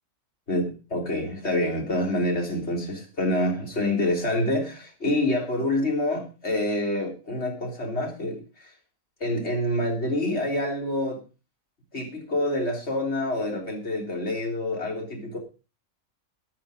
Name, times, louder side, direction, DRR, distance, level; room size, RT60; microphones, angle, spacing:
voice 1, 0.5-8.7 9.2-11.2 11.9-15.4, left 1 dB, 50° left, 0 dB, 3.9 m, -27 dB
12.5 x 12.0 x 5.1 m, 0.33 s
omnidirectional pair, 1.4 m